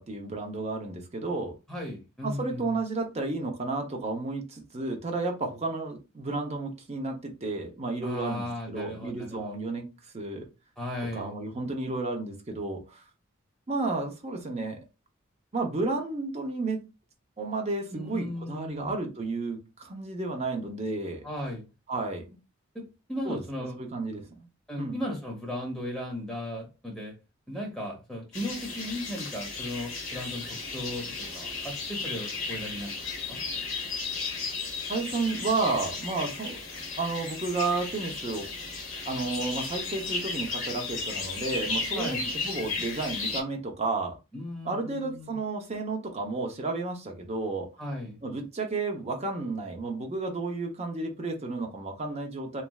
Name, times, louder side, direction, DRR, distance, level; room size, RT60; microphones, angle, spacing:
voice 1, 0.0-1.6 2.2-9.9 10.1-10.5 11.1-13.0 13.7-14.8 15.5-16.8 17.4-21.2 21.9-22.4 23.2-23.4 23.8-24.3 24.8-25.0 34.9-36.6 37.0-38.5 39.1-44.2 44.6-47.7 48.2-52.6, right 3 dB, 30° right, 0.6 m, -32 dB
voice 2, 1.7-2.7 8.0-9.6 10.8-11.3 17.9-18.9 21.2-21.6 22.7-23.9 24.7-27.1 27.5-33.4 41.9-42.2 44.3-45.4 47.8-48.2, left 1 dB, ahead, 1.1 m, -36 dB
sound 1, 28.3-43.4, left 4 dB, 65° left, 1.0 m, -35 dB
3.2 x 2.5 x 2.3 m
head